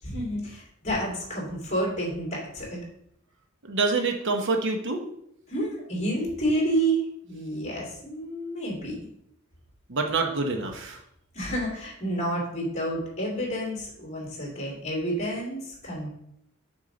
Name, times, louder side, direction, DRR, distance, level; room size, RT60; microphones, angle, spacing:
voice 1, 0.0-2.8 5.5-9.0 11.3-16.1, right 1 dB, 30° left, -3 dB, 2.5 m, -29 dB
voice 2, 3.6-5.0 9.9-11.0, right 3 dB, 60° right, 4 dB, 0.8 m, -26 dB
6.3 x 5.5 x 3.9 m, 0.73 s
head